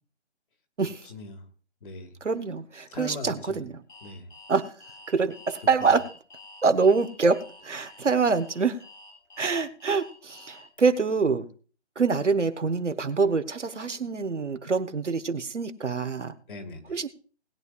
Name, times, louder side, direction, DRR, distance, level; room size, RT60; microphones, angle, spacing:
voice 1, 1.1-1.4 1.8-2.1 2.9-3.7 4.0-4.2 5.8-6.0 16.5-16.9, left 2 dB, 45° left, 5 dB, 2.1 m, -40 dB
voice 2, 2.2-3.8 4.5-4.7 5.1-6.1 6.6-8.8 9.4-11.5 12.0-16.3 16.9-17.1, right 4 dB, 85° right, 10 dB, 1.3 m, -25 dB
Alarm, 3.9-10.8, left 2 dB, 70° left, 6.8 m, -49 dB
20.0 x 9.2 x 2.5 m, 0.38 s
figure-of-eight pair, 150°, 35 cm